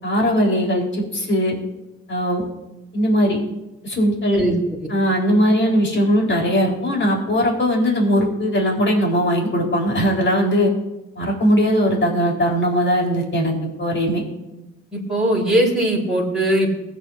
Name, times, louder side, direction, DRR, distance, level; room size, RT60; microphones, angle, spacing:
voice 1, 0.0-1.6 2.1-2.4 2.9-3.4 3.8-4.4 4.9-10.7 11.2-14.2, equal, 40° left, -1 dB, 4.2 m, -19 dB
voice 2, 14.9-16.8, right 1 dB, ahead, -7 dB, 4.4 m, -19 dB
21.0 x 9.0 x 2.7 m, 0.99 s
supercardioid pair, 55°, 31 cm